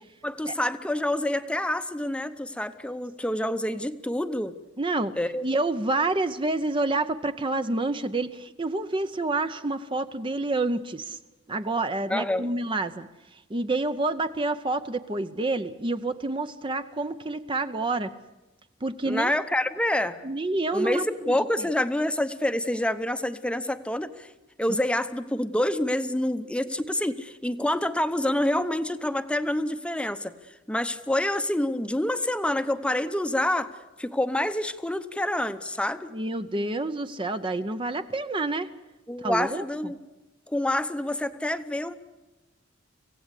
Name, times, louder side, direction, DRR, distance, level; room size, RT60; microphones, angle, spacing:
voice 1, 0.2-4.5 5.1-5.4 12.1-12.5 19.0-20.2 20.7-24.3 24.6-30.3 30.7-33.7 34.0-36.1 39.1-40.0 40.5-42.0, left 1 dB, 5° left, 11 dB, 0.8 m, -27 dB
voice 2, 4.8-5.1 5.4-11.2 11.5-13.1 13.5-18.1 18.8-19.3 20.2-21.4 36.1-38.7 39.2-39.6, right 2 dB, 25° right, 10 dB, 0.7 m, -28 dB
25.0 x 16.5 x 8.3 m, 1.1 s
head